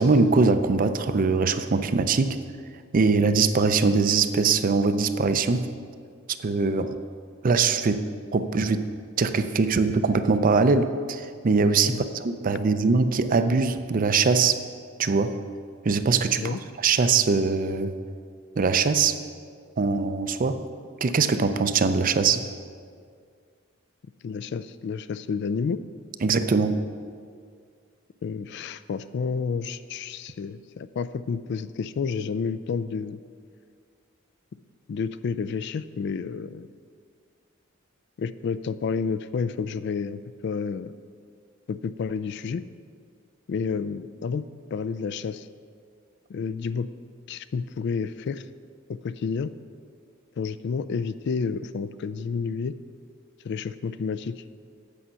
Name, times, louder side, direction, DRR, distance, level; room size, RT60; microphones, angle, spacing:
voice 1, 0.0-2.4 2.9-5.7 6.4-7.0 7.4-8.9 9.2-14.6 15.0-15.3 15.8-17.9 18.6-19.2 19.8-20.6 21.0-22.5 26.2-26.8, right 4 dB, 45° right, 10 dB, 0.4 m, -22 dB
voice 2, 24.2-25.8 28.2-33.2 34.9-36.7 38.2-40.9 41.7-42.6 43.5-44.4 44.7-45.5 46.3-46.9 47.3-48.4 49.0-49.5 50.4-52.7 53.4-54.4, left 5 dB, 60° left, 14 dB, 0.3 m, -30 dB
8.4 x 5.6 x 7.6 m, 2.1 s
head